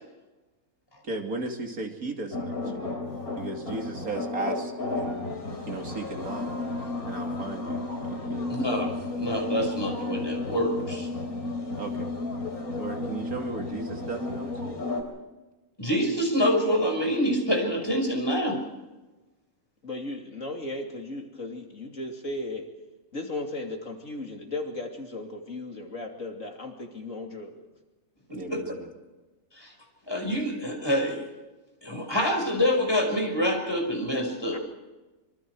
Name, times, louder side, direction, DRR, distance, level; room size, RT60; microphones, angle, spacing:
voice 1, 1.1-3.0 3.4-5.3 5.7-6.5 7.1-7.8 8.1-8.9 11.8-12.1 12.8-14.8 28.3-28.9, right 2 dB, 75° right, 3 dB, 3.1 m, -36 dB
sound 1, 2.3-15.0, left 2 dB, 85° left, 4.3 m, -33 dB
voice 2, 8.5-11.1 15.8-18.6 28.3-28.6 29.5-29.7 30.1-31.2 31.8-34.6, equal, 15° left, 2 dB, 5.8 m, -26 dB
voice 3, 19.8-22.7 23.1-27.6 34.5-34.6, left 2 dB, 60° left, 2 dB, 3.2 m, -36 dB
25.5 x 24.5 x 4.8 m, 1.1 s
omnidirectional pair, 1.5 m